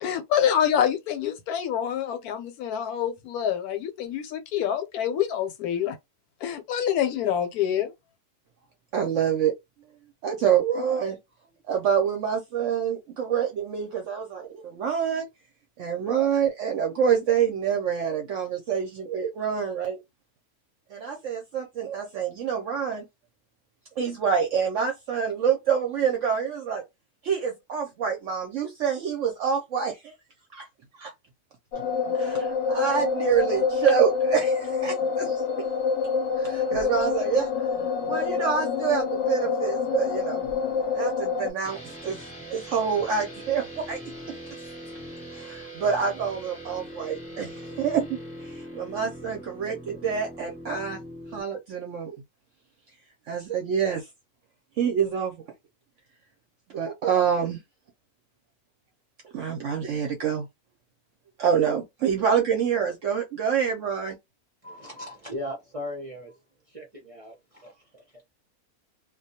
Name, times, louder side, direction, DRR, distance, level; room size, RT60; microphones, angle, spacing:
voice 1, 0.0-6.0 6.4-7.9, left 9 dB, 80° left, 1.1 m, -26 dB
voice 2, 8.9-9.5 10.2-11.2 11.7-15.3 15.8-20.0 20.9-23.0 24.0-26.8 27.2-30.1 30.5-30.7 31.0-31.1 32.1-35.4 36.4-37.5 38.1-40.4 40.9-42.2 42.5-44.0 45.3-51.0 51.3-52.1 53.3-54.1 54.8-55.3 56.7-57.6 59.3-60.5 61.4-64.2, right 7 dB, 65° right, 0.8 m, -26 dB
sound 1, 31.7-41.5, left 5 dB, 65° left, 0.8 m, -27 dB
sound 2, 41.6-51.4, right 1 dB, 10° right, 0.8 m, -41 dB
voice 3, 64.6-66.4 66.7-68.2, left 1 dB, 40° right, 0.5 m, -38 dB
2.3 x 2.2 x 2.7 m
omnidirectional pair, 1.6 m